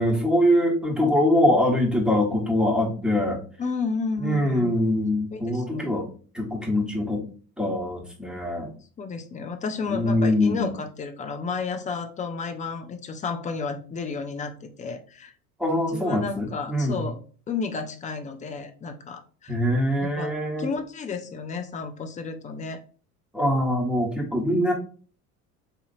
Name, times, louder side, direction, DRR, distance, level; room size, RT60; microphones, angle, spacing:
voice 1, 0.0-3.4 4.2-6.1 6.3-7.2 7.6-8.7 9.9-10.7 15.6-17.0 19.5-20.7 23.3-24.7, left 1 dB, ahead, -1 dB, 1.2 m, -23 dB
voice 2, 3.6-4.8 5.3-6.0 9.0-15.3 15.9-17.2 17.5-19.6 20.0-20.3 20.6-22.8, left 4 dB, 15° left, 6 dB, 0.5 m, -32 dB
4.2 x 2.7 x 2.6 m, 0.40 s
figure-of-eight pair, 70°, 47 cm